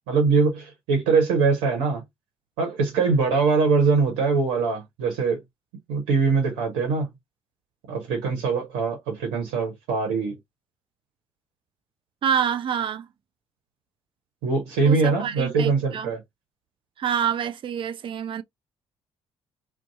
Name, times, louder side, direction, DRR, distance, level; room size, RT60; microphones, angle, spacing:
voice 1, 0.1-2.0 2.6-5.4 5.9-7.1 7.9-10.3 14.4-16.2, right 4 dB, 65° right, 0.9 m, -22 dB
voice 2, 12.2-13.1 14.8-16.1 17.0-18.4, right 8 dB, 35° right, 0.4 m, -27 dB
2.6 x 2.2 x 2.6 m
figure-of-eight pair, 45°, 15 cm